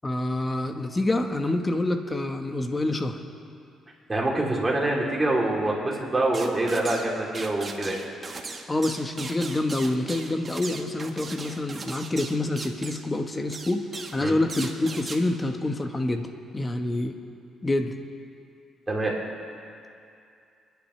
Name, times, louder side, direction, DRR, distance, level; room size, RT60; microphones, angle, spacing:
voice 1, 0.0-3.2 8.7-13.8 14.1-16.3 16.5-17.2 17.6-18.0, left 2 dB, 20° left, 5 dB, 1.2 m, -27 dB
voice 2, 4.1-8.0 14.2-14.3 18.9-19.1, right 2 dB, 20° right, -3 dB, 3.1 m, -25 dB
sound 1, 6.3-7.1 7.3-13.1 13.5-14.2 14.5-15.2, right 4 dB, 35° right, 1.4 m, -38 dB
29.0 x 10.5 x 3.3 m, 2.5 s
cardioid pair, 90°, 0 cm